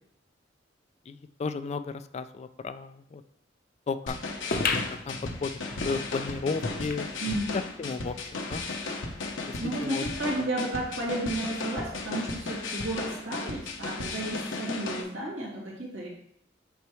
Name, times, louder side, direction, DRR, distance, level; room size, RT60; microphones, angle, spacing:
voice 1, 1.1-3.2 3.9-4.2 4.7-5.5 5.8-7.1 7.8-8.6 9.4-10.0 10.4-10.5, left 4 dB, 35° left, 11 dB, 0.3 m, -34 dB
sound 1, 4.1-15.0, left 3 dB, 80° left, 0.9 m, -35 dB
sound 2, 4.5-7.5 7.9-8.0 8.2-8.3 9.1-9.2, left 3 dB, 50° left, 0.7 m, -33 dB
voice 2, 7.2-7.6 9.6-16.1, right 1 dB, 85° right, -5 dB, 2.3 m, -32 dB
8.2 x 4.5 x 3.1 m, 0.72 s
head